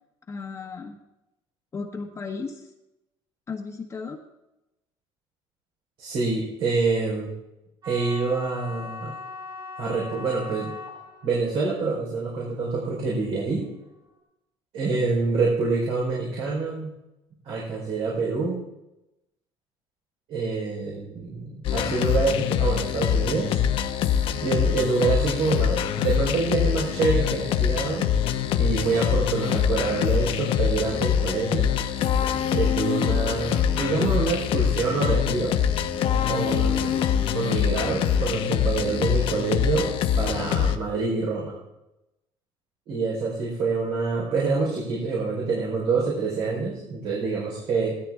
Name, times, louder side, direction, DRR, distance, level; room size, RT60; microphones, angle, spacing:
voice 1, 0.3-1.0 1.7-2.7 3.5-4.2, left 4 dB, 25° left, 2 dB, 1.2 m, -35 dB
voice 2, 6.0-7.3 7.8-9.1 9.8-10.7 11.2-13.6 14.7-16.9 17.4-18.6 20.3-23.6 24.4-28.1 28.5-32.0 32.5-35.6 36.2-37.0 37.3-41.5 42.9-48.0, right 4 dB, 65° right, -4 dB, 4.4 m, -26 dB
sound 1, 7.8-14.0, left 4 dB, 40° right, 5.9 m, -40 dB
sound 2, 21.6-40.8, left 9 dB, 60° left, 1.0 m, -24 dB
16.5 x 13.0 x 3.6 m, 0.92 s
cardioid pair, 130°, 10 cm